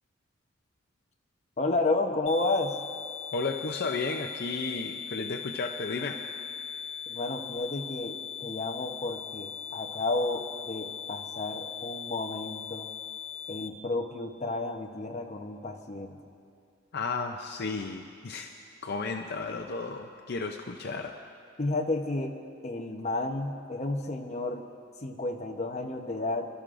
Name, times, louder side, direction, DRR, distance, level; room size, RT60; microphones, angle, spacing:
voice 1, 1.6-2.7 7.1-12.9 13.5-16.2 21.6-22.3 22.6-24.6 25.0-26.5, left 2 dB, 35° left, 3 dB, 0.9 m, -31 dB
sound 1, 2.3-13.7, left 8 dB, 80° left, 1.7 m, -40 dB
voice 2, 3.3-6.2 16.9-18.5 18.8-21.1, left 4 dB, 55° left, 4 dB, 0.6 m, -33 dB
26.5 x 12.5 x 2.6 m, 2.4 s
head